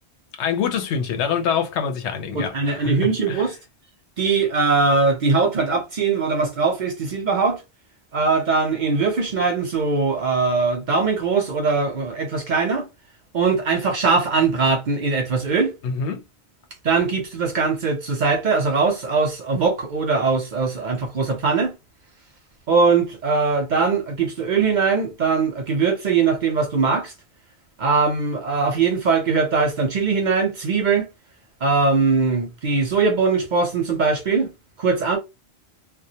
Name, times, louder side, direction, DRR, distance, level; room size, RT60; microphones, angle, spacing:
voice 1, 0.4-3.5 15.8-16.2, left 7 dB, 85° left, 0.9 m, -25 dB
voice 2, 2.3-3.5 4.2-7.6 8.1-12.9 13.3-15.7 16.8-21.7 22.7-27.1 27.8-31.1 31.6-34.5 34.8-35.2, right 4 dB, 55° right, 0.6 m, -21 dB
2.2 x 2.1 x 2.7 m
omnidirectional pair, 1.1 m